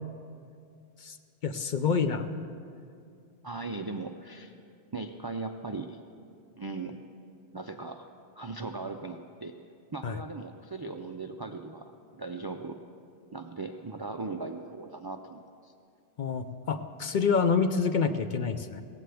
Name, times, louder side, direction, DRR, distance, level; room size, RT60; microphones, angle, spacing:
voice 1, 1.4-2.2 10.0-10.2 16.2-18.8, left 5 dB, 55° left, 8 dB, 0.6 m, -27 dB
voice 2, 3.4-4.5 4.9-6.0 6.6-7.0 7.5-8.1 8.4-9.6 9.9-11.9 12.2-12.8 13.3-15.7, right 3 dB, 40° right, 5 dB, 0.3 m, -38 dB
17.0 x 15.5 x 3.4 m, 2.4 s
omnidirectional pair, 1.1 m